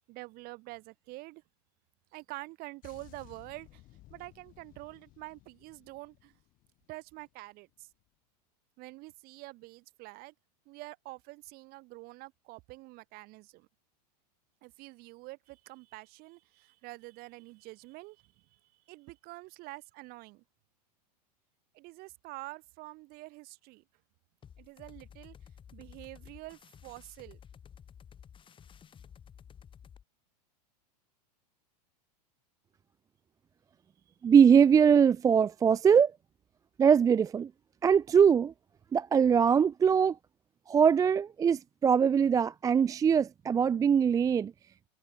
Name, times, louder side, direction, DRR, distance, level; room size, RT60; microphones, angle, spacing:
voice 1, 0.1-1.4 2.1-6.3 6.9-7.9 8.8-10.3 10.7-13.7 14.6-18.6 18.9-20.4 21.7-23.8 24.6-25.4 25.7-27.4, right 22 dB, 45° right, 7.1 m, -47 dB
sound 1, 2.8-7.4 7.6-7.9, left 17 dB, 40° left, 3.2 m, -58 dB
sound 2, 24.4-30.0, left 8 dB, 25° left, 3.1 m, -53 dB
voice 2, 34.2-36.1 36.8-37.5 37.8-38.5 38.9-40.2 40.7-44.5, right 7 dB, 15° right, 0.5 m, -22 dB
hypercardioid pair, 115°, 21 cm